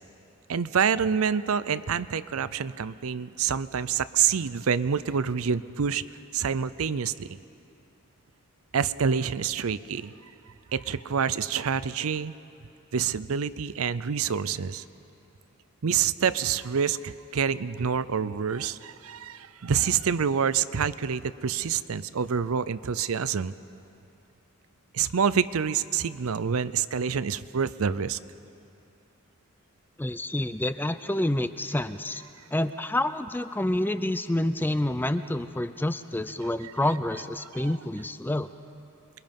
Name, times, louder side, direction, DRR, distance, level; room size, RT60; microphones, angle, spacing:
voice 1, 0.5-6.0 6.3-7.4 8.7-10.1 10.7-12.3 12.9-14.8 15.8-23.5 24.9-28.2 37.5-37.7, right 7 dB, 75° right, 15 dB, 0.5 m, -27 dB
voice 2, 30.0-32.2 32.5-38.5, left 1 dB, 10° left, 11 dB, 0.4 m, -28 dB
27.5 x 22.0 x 5.3 m, 2.8 s
head